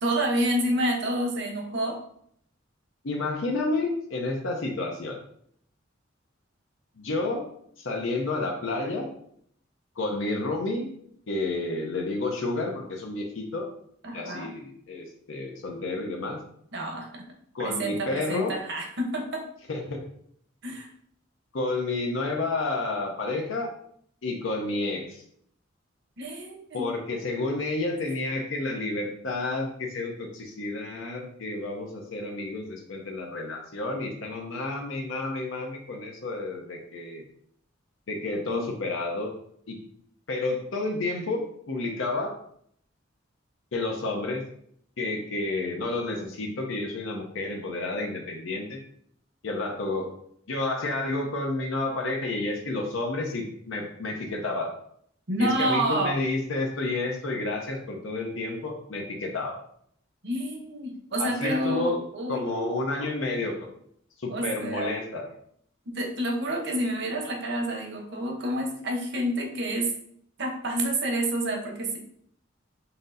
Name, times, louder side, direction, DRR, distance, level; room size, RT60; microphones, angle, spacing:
voice 1, 0.0-2.0 14.0-14.5 16.7-17.2 17.6-19.4 20.6-20.9 26.2-26.8 38.5-38.6 55.3-56.1 60.2-63.1 64.3-65.0 65.9-69.9 70.4-72.0, right 1 dB, 60° right, 2 dB, 0.9 m, -29 dB
voice 2, 3.0-5.2 7.0-7.4 7.8-9.1 10.0-10.9 11.3-13.7 14.1-16.4 17.5-18.6 19.7-20.1 21.5-23.7 24.2-25.2 26.7-37.2 38.1-39.3 39.7-39.8 40.3-42.3 43.7-44.4 45.0-48.8 49.4-50.1 50.5-54.7 55.4-59.6 61.2-62.0 62.3-63.7 64.2-65.3, left 2 dB, 80° left, 1 dB, 0.6 m, -30 dB
5.8 x 2.6 x 2.6 m, 0.67 s
head